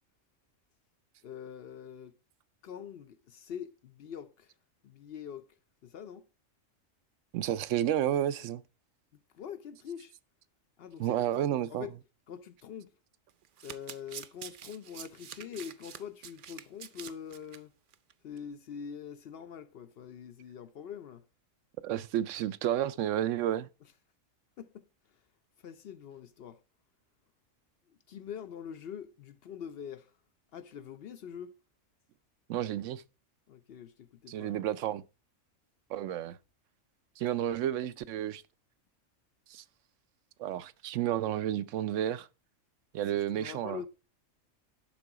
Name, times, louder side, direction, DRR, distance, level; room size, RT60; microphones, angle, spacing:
voice 1, 1.2-2.1 2.6-4.5 4.8-5.5 5.8-6.3 9.3-10.1 10.8-11.9 12.3-12.9 13.6-17.7 18.2-21.2 24.6-24.9 25.6-26.6 27.9-30.1 30.5-31.6 33.5-34.6 43.1-43.9, left 8 dB, 60° left, 0.7 m, -44 dB
voice 2, 7.3-8.6 11.0-11.9 21.8-23.7 32.5-33.0 34.3-35.0 35.9-36.4 37.2-38.4 39.5-39.6 40.4-42.3 42.9-43.8, right 11 dB, 75° right, 0.9 m, -31 dB
Domestic sounds home sounds, 13.3-17.6 17.9-18.1 18.4-18.5, right 9 dB, 60° right, 0.5 m, -46 dB
11.5 x 3.8 x 4.8 m
omnidirectional pair, 1.3 m